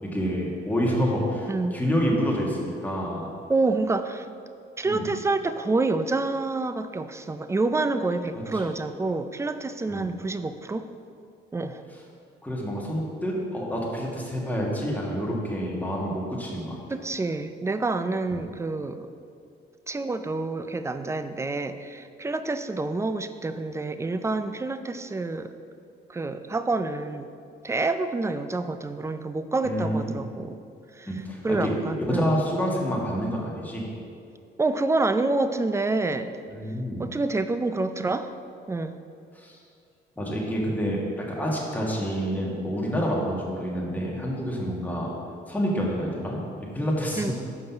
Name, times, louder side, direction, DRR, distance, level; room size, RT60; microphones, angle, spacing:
voice 1, 0.0-3.3 4.8-5.1 8.3-8.7 9.9-10.1 12.4-16.8 29.6-30.2 31.1-31.7 32.0-33.9 36.5-37.0 39.3-39.6 40.2-45.1 45.5-47.3, equal, 10° left, -3 dB, 1.6 m, -28 dB
voice 2, 1.5-1.8 3.5-4.3 4.8-10.9 11.5-11.8 16.9-19.1 19.9-25.6 26.1-27.3 27.6-30.6 31.0-31.1 31.4-32.4 34.6-36.3 37.0-38.3 38.7-39.0 47.2-47.3, right 3 dB, 15° right, 10 dB, 0.4 m, -27 dB
5.8 x 5.3 x 5.7 m, 2.4 s
cardioid pair, 90°, 20 cm